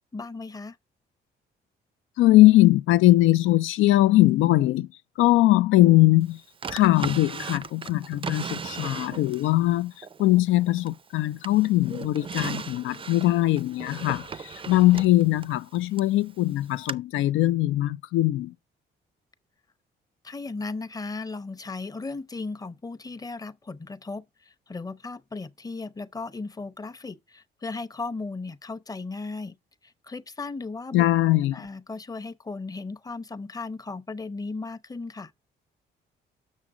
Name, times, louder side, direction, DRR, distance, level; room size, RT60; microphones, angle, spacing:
voice 1, 0.1-0.8 20.2-29.6 29.8-31.0 31.5-35.3, left 3 dB, 20° left, 0.7 m, -36 dB
voice 2, 2.2-4.9 5.2-6.4 6.7-9.9 10.2-14.3 14.7-18.5 30.9-31.6, left 16 dB, 85° left, 0.4 m, -21 dB
Drawer open or close, 6.6-9.5 10.0-11.1 11.4-16.1 16.9-17.0, right 5 dB, 25° right, 0.4 m, -37 dB
7.2 x 6.4 x 3.7 m
cardioid pair, 90°, 20 cm